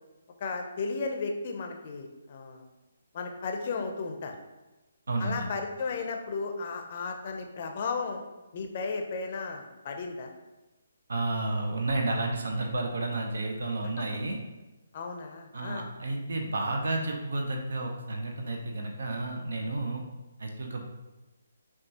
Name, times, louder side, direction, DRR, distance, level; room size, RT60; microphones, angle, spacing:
voice 1, 0.4-2.6 3.1-4.3 5.2-8.2 8.5-10.3 14.0-14.1 14.9-15.9, left 4 dB, 40° left, 4 dB, 0.5 m, -34 dB
voice 2, 5.1-5.5 11.1-14.4 15.5-20.0 20.4-20.9, right 2 dB, 75° right, 2 dB, 0.6 m, -31 dB
5.8 x 2.3 x 2.8 m, 1.1 s
hypercardioid pair, 165°, 0 cm